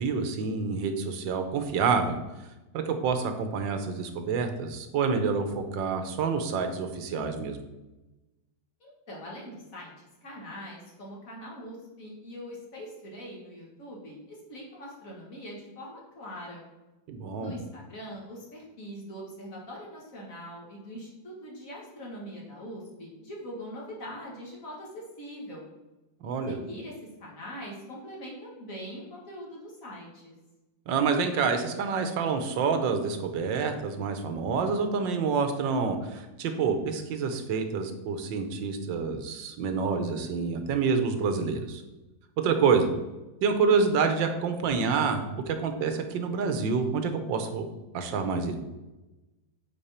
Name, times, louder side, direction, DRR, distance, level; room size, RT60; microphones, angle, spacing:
voice 1, 0.0-2.2 2.7-7.6 17.1-17.5 26.2-26.5 30.9-41.8 42.4-42.9 43.4-47.7 47.9-48.6, right 5 dB, 85° right, 7 dB, 1.6 m, -27 dB
voice 2, 8.8-9.9 10.2-16.6 17.4-25.6 26.5-26.9 27.2-30.3, equal, 50° left, -3 dB, 2.2 m, -42 dB
8.8 x 4.4 x 4.3 m, 1.1 s
omnidirectional pair, 2.0 m